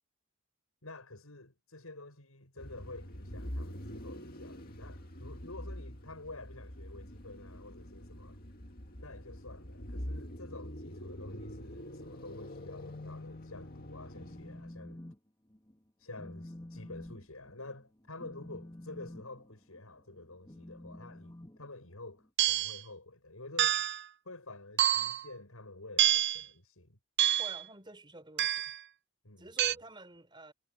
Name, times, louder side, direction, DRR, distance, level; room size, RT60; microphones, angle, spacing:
voice 1, 0.8-8.4 9.0-15.0 16.0-23.8 24.2-27.0 29.2-29.5, left 2 dB, 85° left, 7.6 m, -49 dB
sound 1, 2.6-14.8, equal, 45° left, 2.3 m, -45 dB
Telephone, 14.1-15.2 15.5-15.8 16.1-22.3, left 1 dB, 20° left, 1.9 m, -49 dB
sound 2, 22.4-22.8 23.6-24.0 24.8-25.2 26.0-26.4 27.2-27.6 28.4-28.8 29.6-29.7, right 12 dB, 50° right, 0.5 m, -27 dB
voice 2, 27.4-28.6 29.4-30.5, right 2 dB, 20° right, 4.3 m, -47 dB
head